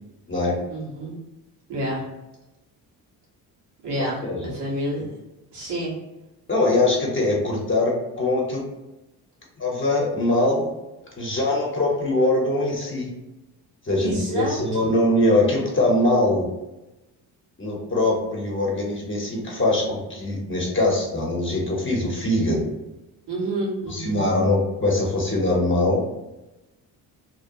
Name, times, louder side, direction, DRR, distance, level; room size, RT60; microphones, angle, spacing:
voice 1, 0.7-1.1 1.7-2.0 3.8-5.1 5.5-5.9 14.0-14.9 23.3-24.2, right 1 dB, 75° right, -6 dB, 1.5 m, -29 dB
voice 2, 4.0-4.6 6.5-8.6 9.6-10.7 11.2-13.1 13.8-16.5 17.6-22.7 23.9-26.0, left 2 dB, 30° left, -2 dB, 0.9 m, -22 dB
2.9 x 2.2 x 2.7 m, 0.99 s
supercardioid pair, 70°, 42 cm